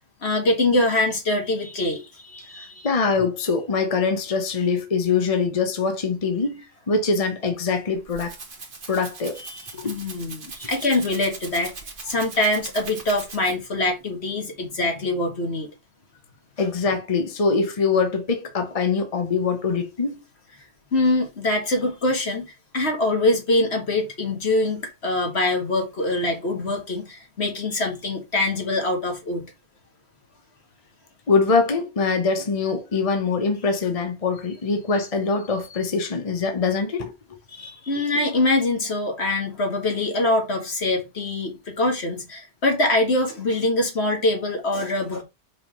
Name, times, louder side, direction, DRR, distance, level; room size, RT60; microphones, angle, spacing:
voice 1, 0.2-2.9 9.4-11.7 12.0-15.7 20.9-29.5 37.5-45.2, left 2 dB, 70° left, 2.1 m, -24 dB
voice 2, 2.6-8.3 8.9-9.4 9.7-9.9 16.6-20.2 31.3-37.1, left 4 dB, 35° left, 1.0 m, -23 dB
Rattle (instrument), 7.8-13.8, right 4 dB, 50° right, 1.4 m, -40 dB
5.2 x 3.6 x 5.8 m
omnidirectional pair, 1.1 m